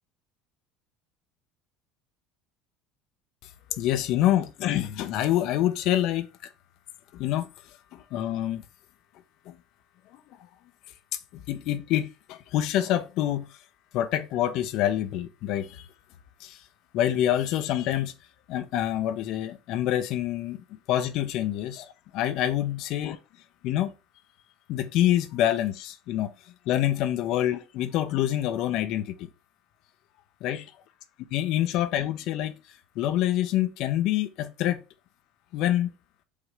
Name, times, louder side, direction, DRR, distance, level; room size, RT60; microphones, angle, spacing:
voice 1, 3.7-6.5 7.1-7.5 7.9-8.6 9.5-9.6 10.1-10.2 11.3-13.5 13.9-15.9 16.4-16.6 16.9-18.1 18.5-20.6 20.9-23.2 23.6-23.9 24.7-26.3 26.7-29.3 30.4-30.7 31.3-32.5 33.0-34.8 35.5-35.9, left 12 dB, 65° left, 0.5 m, -26 dB
4.8 x 2.7 x 3.3 m
supercardioid pair, 85°, 0 cm